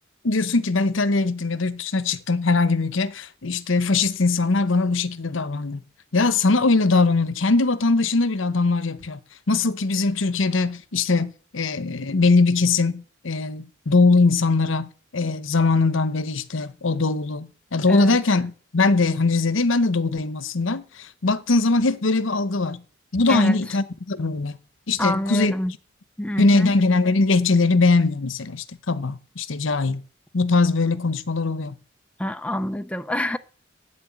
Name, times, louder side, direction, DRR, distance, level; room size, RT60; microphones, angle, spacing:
voice 1, 0.2-5.8 6.1-9.2 9.5-22.8 23.1-24.6 24.9-25.5 26.4-30.0 30.3-31.7, left 3 dB, 75° left, 0.9 m, -21 dB
voice 2, 25.0-25.7 26.2-26.7 32.2-33.4, left 1 dB, 5° left, 0.6 m, -26 dB
11.5 x 8.7 x 8.5 m
head